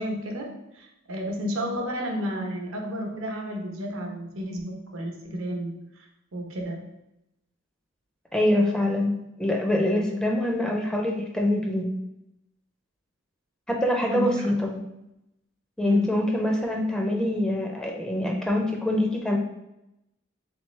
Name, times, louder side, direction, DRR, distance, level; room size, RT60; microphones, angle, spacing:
voice 1, 0.0-5.8 6.3-6.8 14.1-14.8 15.8-16.1, equal, 75° right, 1 dB, 0.7 m, -32 dB
voice 2, 8.3-11.9 13.7-14.7 15.8-19.4, left 1 dB, 5° left, 0 dB, 0.4 m, -24 dB
3.3 x 3.3 x 3.1 m, 0.87 s
head